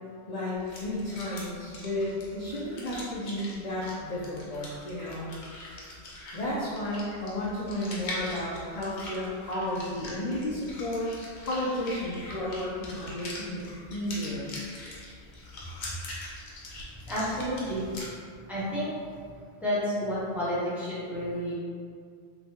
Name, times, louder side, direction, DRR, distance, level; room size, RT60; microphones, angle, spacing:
voice 1, 0.3-5.3 6.3-13.6 13.9-14.5, left 1 dB, 55° left, -7 dB, 0.4 m, -33 dB
sound 1, 0.5-18.1, left 1 dB, 80° left, 0.9 m, -43 dB
voice 2, 17.1-17.9 18.5-18.9 19.6-21.5, equal, ahead, -10 dB, 0.7 m, -30 dB
2.8 x 2.2 x 2.8 m, 2.2 s
omnidirectional pair, 1.1 m